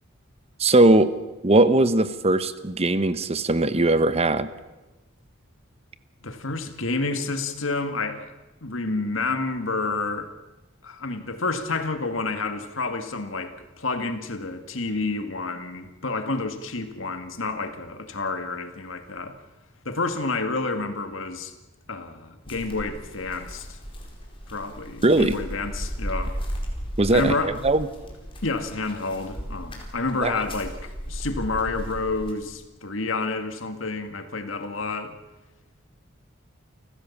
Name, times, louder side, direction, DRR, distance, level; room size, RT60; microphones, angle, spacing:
voice 1, 0.6-1.1 1.4-4.5 25.0-25.4 27.0-27.9 30.2-30.4, right 2 dB, 30° right, 0.9 m, -19 dB
voice 2, 6.2-8.3 8.6-10.3 10.8-19.4 19.9-21.5 21.9-23.8 24.5-26.4 27.1-27.6 28.4-35.2, left 3 dB, 70° left, 2.0 m, -29 dB
sound 1, 22.4-32.3, equal, 25° left, 4.7 m, -35 dB
29.5 x 15.5 x 7.3 m
head